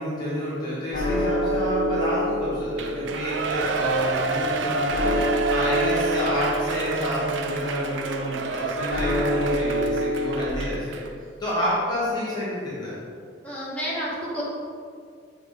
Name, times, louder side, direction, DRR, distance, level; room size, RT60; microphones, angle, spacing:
voice 1, 0.0-5.1 5.5-11.0 11.4-13.0, equal, 25° left, -8 dB, 1.2 m, -29 dB
sound 1, 0.9-10.5, equal, 45° left, 1.3 m, -28 dB
Shout / Cheering, 2.7-11.1 11.5-11.6, right 4 dB, 90° right, 0.5 m, -29 dB
voice 2, 13.4-14.4, equal, 5° left, -8 dB, 1.4 m, -30 dB
7.0 x 3.4 x 4.8 m, 2.2 s
head